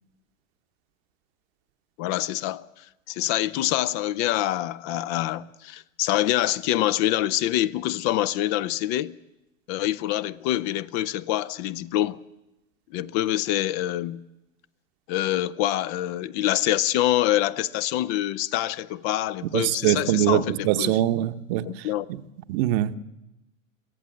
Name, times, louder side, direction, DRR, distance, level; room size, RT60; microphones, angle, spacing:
voice 1, 2.0-9.1 9.7-12.2 12.9-14.2 15.1-21.0 21.6-22.1, left 13 dB, 40° left, 0.7 m, -26 dB
voice 2, 19.5-21.7 22.5-22.9, right 13 dB, 50° right, 1.1 m, -23 dB
23.5 x 15.5 x 7.8 m
hypercardioid pair, 100°, 40 cm